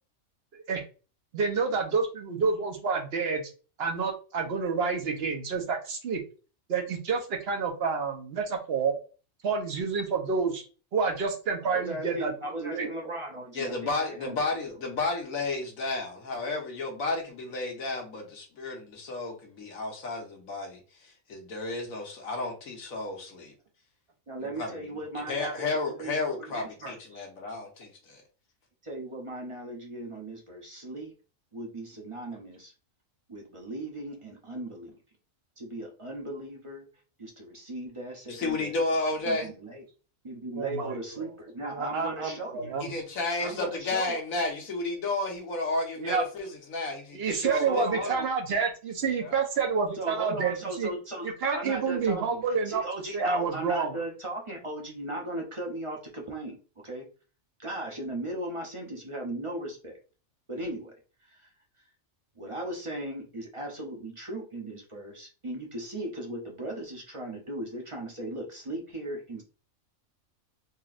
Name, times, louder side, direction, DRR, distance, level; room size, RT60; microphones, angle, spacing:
voice 1, 1.3-3.5 3.8-6.2 6.7-8.9 9.4-10.7 10.9-12.3 12.6-12.9 40.6-40.9 41.7-42.9 46.0-46.2 47.1-50.9 51.2-52.8 53.1-53.9, right 5 dB, 55° right, 4 dB, 0.9 m, -28 dB
voice 2, 11.6-14.8 24.3-27.3 28.8-31.1 31.5-32.7 33.3-35.0 35.6-36.9 37.2-38.8 39.2-39.8 40.2-42.8 43.4-44.2 47.4-48.3 49.9-57.1 57.6-60.0 60.5-60.9 61.2-61.5 62.4-69.4, right 1 dB, 30° right, -1 dB, 0.7 m, -37 dB
voice 3, 13.5-23.5 24.6-24.7 25.3-28.2 38.3-39.5 42.8-48.2 49.2-49.4, left 3 dB, 75° left, 1 dB, 1.5 m, -32 dB
4.2 x 3.0 x 2.4 m, 0.35 s
omnidirectional pair, 1.4 m